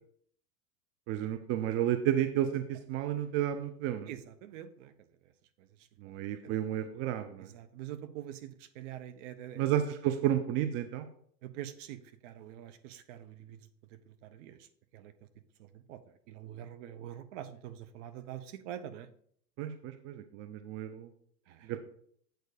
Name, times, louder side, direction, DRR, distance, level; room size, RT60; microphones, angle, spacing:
voice 1, 1.1-4.1 6.0-7.5 9.6-11.1 19.6-21.1 21.6-21.8, right 11 dB, 30° right, 9 dB, 0.5 m, -32 dB
voice 2, 4.1-4.9 6.4-6.6 7.5-9.7 11.4-13.6 14.1-14.7 14.9-15.1 15.6-16.0 16.3-19.1 21.5-21.7, right 11 dB, 50° right, 11 dB, 0.9 m, -45 dB
7.9 x 4.4 x 4.9 m, 0.62 s
hypercardioid pair, 95°, 49 cm